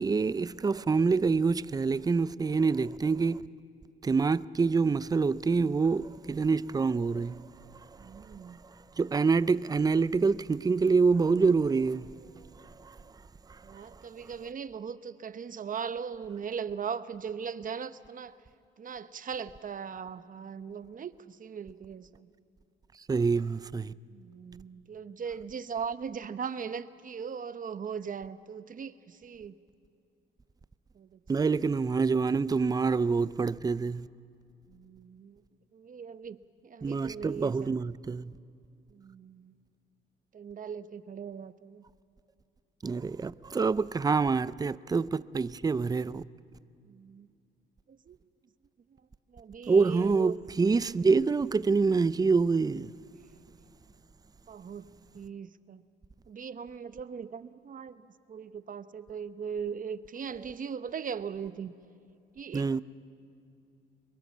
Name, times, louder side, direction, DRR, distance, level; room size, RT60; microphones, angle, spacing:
voice 1, 0.0-3.4 4.0-7.5 9.0-12.1 12.8-13.0 13.5-13.8 23.1-23.9 31.3-34.1 36.8-38.3 42.8-46.2 49.7-52.9 62.5-62.8, right 4 dB, 20° right, 0.5 m, -26 dB
voice 2, 8.0-8.6 13.6-18.4 18.8-22.3 24.1-29.6 30.9-31.5 34.7-35.4 35.7-36.4 36.6-37.8 38.9-39.6 40.3-41.8 46.8-47.3 47.9-48.2 49.3-50.4 53.5-53.6 54.5-54.9 55.1-55.8 56.3-58.0 58.3-61.7 62.3-62.8, right 6 dB, 45° right, 0.9 m, -39 dB
24.0 x 22.0 x 7.3 m
cardioid pair, 90°, 20 cm